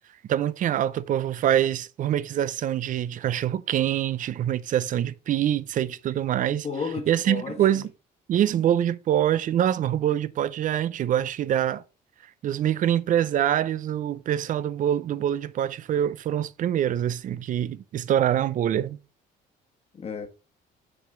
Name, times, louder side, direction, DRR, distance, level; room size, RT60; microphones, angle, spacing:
voice 1, 0.3-6.7 7.1-7.9 8.3-11.8 12.4-19.0, right 11 dB, 50° right, 0.6 m, -25 dB
voice 2, 6.6-7.8 19.9-20.3, left 5 dB, 35° left, 1.5 m, -33 dB
6.2 x 4.7 x 5.2 m
cardioid pair, 110°, 17 cm